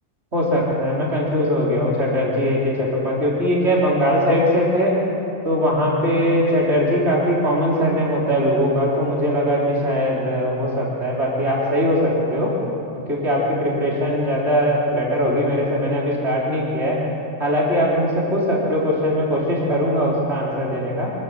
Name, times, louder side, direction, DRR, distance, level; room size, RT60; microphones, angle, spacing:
voice 1, 0.3-4.9 5.4-12.5 13.1-17.0 17.4-21.1, equal, 55° right, -5 dB, 4.2 m, -20 dB
25.0 x 14.0 x 7.7 m, 2.8 s
omnidirectional pair, 1.3 m